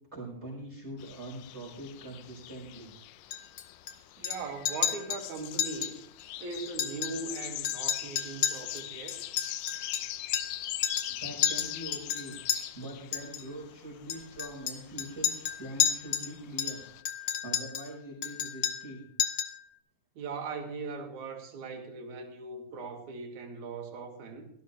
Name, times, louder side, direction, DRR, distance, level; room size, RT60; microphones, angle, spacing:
voice 1, 0.1-2.9 11.1-12.4 12.7-16.8 17.1-19.0, right 1 dB, 20° right, 4.5 m, -43 dB
sound 1, 1.0-17.0, left 13 dB, 85° left, 2.3 m, -42 dB
Chink clink, 3.3-3.9 4.2-4.4 4.6-5.2 5.6-5.9 6.2-6.3 6.7-7.4 7.6-10.6 10.8-11.1 11.4-12.6 13.1-13.4 14.1-16.3 16.6-17.9 18.2-18.9 19.2-19.6, left 10 dB, 60° left, 1.4 m, -31 dB
voice 2, 4.2-6.0 6.4-9.2 20.2-24.5, right 4 dB, 65° right, 3.0 m, -39 dB
17.0 x 14.0 x 3.1 m
omnidirectional pair, 3.8 m